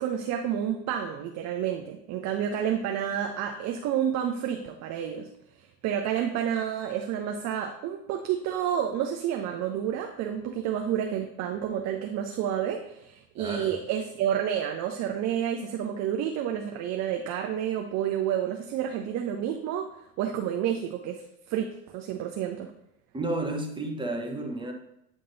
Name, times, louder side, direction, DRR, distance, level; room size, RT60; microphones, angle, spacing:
voice 1, 0.0-5.3 5.6-19.9 20.2-21.2 21.5-22.7, right 9 dB, 40° right, 4 dB, 0.7 m, -30 dB
voice 2, 13.4-13.8 23.1-24.7, right 2 dB, 10° right, 2 dB, 1.0 m, -32 dB
9.0 x 3.8 x 4.0 m, 0.79 s
hypercardioid pair, 105°, 42 cm